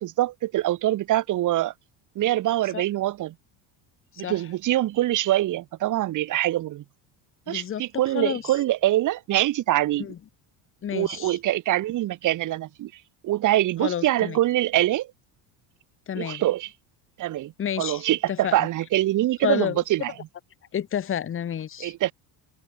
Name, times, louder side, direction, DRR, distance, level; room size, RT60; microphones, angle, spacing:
voice 1, 0.0-1.7 2.1-3.3 4.2-6.8 7.5-10.1 10.9-12.9 13.2-15.1 16.2-16.7 17.2-17.5 17.8-20.1 21.8-22.1, right 14 dB, 45° right, 1.4 m, -24 dB
voice 2, 7.5-8.5 10.0-10.2 10.8-11.4 13.8-14.4 16.1-16.4 17.6-18.7 19.4-19.8 20.7-21.9, left 9 dB, 30° left, 1.6 m, -30 dB
cardioid pair, 140°, 42 cm